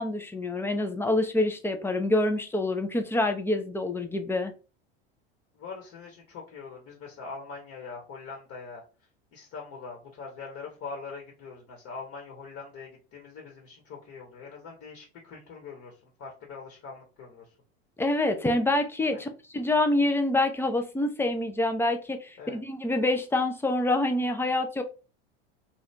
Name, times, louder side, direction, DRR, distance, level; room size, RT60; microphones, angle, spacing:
voice 1, 0.0-4.5 18.0-19.3 19.5-24.8, left 2 dB, 5° left, 7 dB, 0.4 m, -26 dB
voice 2, 5.5-8.8 9.3-17.5 19.1-19.2 22.4-22.6, left 4 dB, 45° left, 1 dB, 1.2 m, -43 dB
2.8 x 2.4 x 3.2 m, 0.33 s
hypercardioid pair, 95°, 33 cm